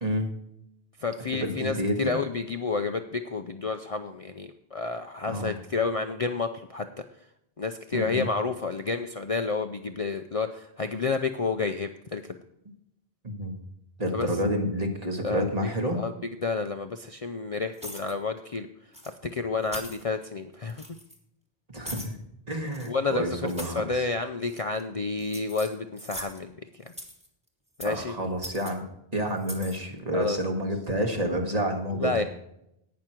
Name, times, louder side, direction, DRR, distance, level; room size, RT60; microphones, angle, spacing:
voice 1, 0.0-0.3 1.3-2.1 5.2-5.6 7.9-8.3 13.2-13.6 14.0-16.0 21.7-22.2 22.5-24.0 27.8-32.2, equal, 40° right, 3 dB, 1.7 m, -29 dB
voice 2, 1.0-6.9 7.6-12.4 14.1-14.3 15.2-15.5 15.9-16.1 16.4-18.7 19.0-20.8 22.9-26.9 27.8-28.1 30.1-30.4 32.0-32.2, left 4 dB, 40° left, 7 dB, 0.6 m, -30 dB
sound 1, 17.7-18.1 18.9-19.1 19.6-20.0 20.7-21.2 21.8-22.1 22.7-22.9 23.5-23.8 24.4-24.8 25.2-26.4 26.9-27.3 27.8-28.0 28.4-28.7 29.4-29.8, equal, 5° right, 1.8 m, -41 dB
17.5 x 6.3 x 4.5 m, 0.80 s
omnidirectional pair, 1.1 m